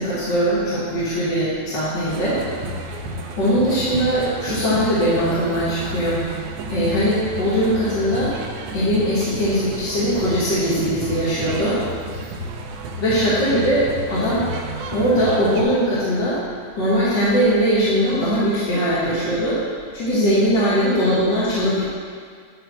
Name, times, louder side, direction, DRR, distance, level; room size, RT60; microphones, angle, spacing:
voice 1, 0.0-2.4 3.4-6.4 6.7-8.3 8.7-11.8 12.1-12.2 13.0-14.5 14.9-16.4 16.8-19.6 19.9-21.9, equal, 45° left, -12 dB, 1.9 m, -20 dB
sound 1, 2.1-15.6, right 1 dB, 80° right, 2.1 m, -32 dB
10.5 x 3.8 x 5.9 m, 2.1 s
omnidirectional pair, 3.5 m